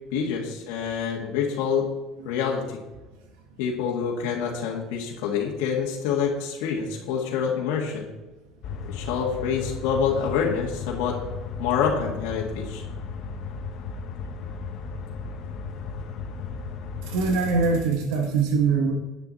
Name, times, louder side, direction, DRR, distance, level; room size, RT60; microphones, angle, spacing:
voice 1, 0.1-1.9 2.2-2.8 3.6-8.1 8.9-11.2 11.6-12.8, left 7 dB, 80° left, -2 dB, 1.8 m, -26 dB
sound 1, 8.6-17.8, left 4 dB, 45° left, 1.0 m, -35 dB
voice 2, 17.1-18.9, right 4 dB, 85° right, 3 dB, 1.3 m, -23 dB
10.5 x 8.8 x 4.1 m, 1.1 s
cardioid pair, 155°, 0 cm